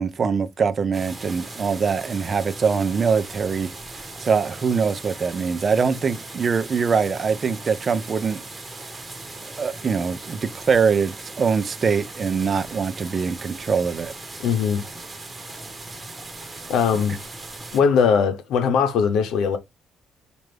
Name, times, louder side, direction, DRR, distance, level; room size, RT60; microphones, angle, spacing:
voice 1, 0.0-3.7 4.2-8.4 9.6-14.1, right 5 dB, 40° right, 0.5 m, -23 dB
sound 1, 0.9-17.8, right 2 dB, 20° right, 1.1 m, -38 dB
voice 2, 14.4-14.8 16.7-17.2 17.7-19.6, left 6 dB, 75° left, 0.7 m, -20 dB
4.4 x 2.5 x 3.3 m
cardioid pair, 85°, 0 cm